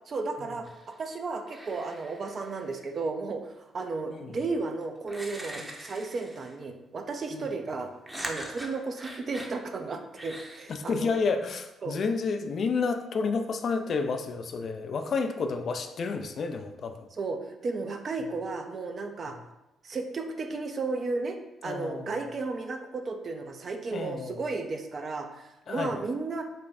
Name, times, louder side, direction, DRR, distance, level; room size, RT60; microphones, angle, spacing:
voice 1, 0.1-0.7 1.0-7.9 8.2-11.2 11.8-12.0 17.2-19.3 19.8-21.4 21.6-26.4, right 3 dB, 50° right, 5 dB, 0.5 m, -34 dB
sound 1, 0.6-1.0 1.5-2.9 4.4-4.5 5.1-6.6 8.1-9.6 10.2-10.7, right 1 dB, 15° right, 0.7 m, -42 dB
voice 2, 10.7-17.1 18.2-18.3 21.6-22.3 23.9-24.4 25.7-26.0, left 4 dB, 55° left, 7 dB, 0.3 m, -30 dB
3.3 x 2.2 x 4.1 m, 0.95 s
hypercardioid pair, 55°, 0 cm